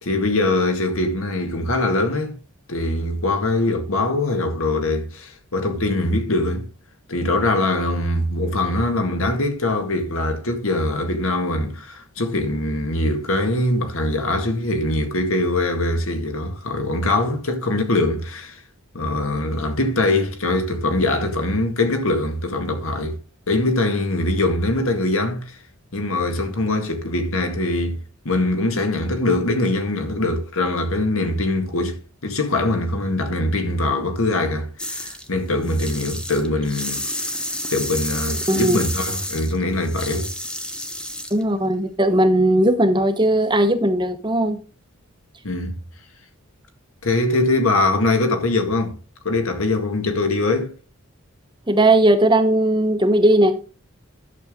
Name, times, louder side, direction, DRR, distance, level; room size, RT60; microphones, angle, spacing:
voice 1, 0.0-2.4 2.7-6.7 7.1-18.6 18.9-23.2 23.5-25.6 25.9-28.0 28.3-37.3 37.7-40.3 45.4-45.8 47.0-48.9 49.2-50.7, left 2 dB, 75° left, 1.9 m, -22 dB
sound 1, 34.8-35.3 35.6-41.4, equal, 5° left, 0.9 m, -30 dB
voice 2, 38.5-38.8 41.3-44.6 51.7-53.5, right 1 dB, 20° right, 0.9 m, -17 dB
11.0 x 7.0 x 3.8 m
head